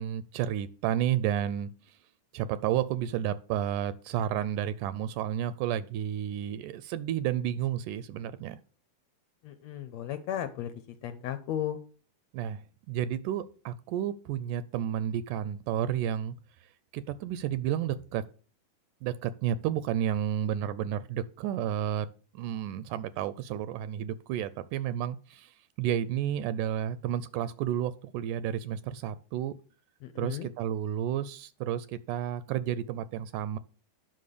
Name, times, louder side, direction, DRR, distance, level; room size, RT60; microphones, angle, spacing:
voice 1, 0.0-1.7 2.3-8.6 12.3-16.3 16.9-18.3 19.0-22.1 22.3-29.6 30.2-33.6, right 10 dB, 80° right, 15 dB, 2.1 m, -31 dB
voice 2, 9.4-10.7 11.0-11.8 30.0-30.5, left 11 dB, 70° left, 9 dB, 1.7 m, -35 dB
9.4 x 5.9 x 6.6 m, 0.38 s
omnidirectional pair, 3.7 m